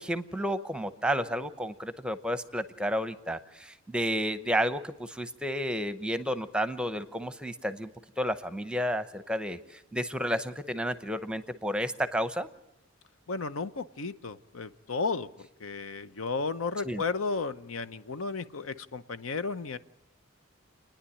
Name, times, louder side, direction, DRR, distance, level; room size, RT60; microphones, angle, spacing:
voice 1, 0.0-7.9 8.2-12.5 16.8-17.0, equal, 5° right, 11 dB, 0.8 m, -31 dB
voice 2, 13.3-15.3 15.6-19.8, left 4 dB, 75° left, 12 dB, 0.8 m, -33 dB
29.0 x 10.5 x 10.0 m, 0.87 s
head